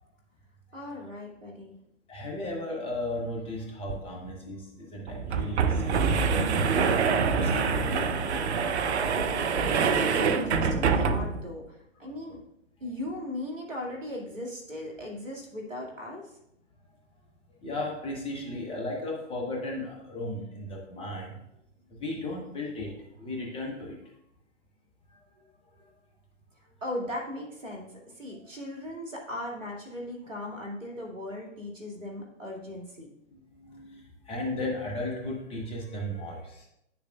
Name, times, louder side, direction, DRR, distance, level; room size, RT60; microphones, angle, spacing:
voice 1, 0.7-1.7 9.6-12.4 12.8-16.3 26.8-33.1, left 1 dB, 80° right, -1 dB, 2.4 m, -38 dB
voice 2, 2.1-6.7 7.3-8.6 12.0-12.1 17.6-21.4 21.9-24.0 33.3-36.7, left 1 dB, 15° left, -1 dB, 1.2 m, -36 dB
sound 1, 3.9-4.0 4.3-4.4 5.1-11.5, right 5 dB, 60° right, 0.7 m, -25 dB
9.8 x 6.7 x 2.4 m, 0.81 s
figure-of-eight pair, 115°, 38 cm